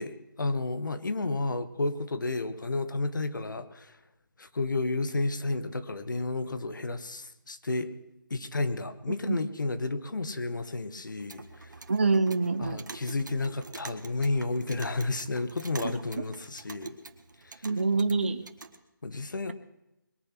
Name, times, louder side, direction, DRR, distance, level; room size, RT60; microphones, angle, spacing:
voice 1, 0.0-4.0 4.4-7.9 8.3-11.7 12.6-17.0 17.4-17.6 19.0-19.5, left 3 dB, 65° left, 11 dB, 1.4 m, -31 dB
Clock, 11.1-18.8, right 3 dB, 60° right, 1.7 m, -46 dB
voice 2, 11.9-12.8 15.8-15.9 17.6-18.5, right 3 dB, 35° right, 10 dB, 0.5 m, -26 dB
22.0 x 8.7 x 6.0 m, 0.92 s
hypercardioid pair, 180°, 11 cm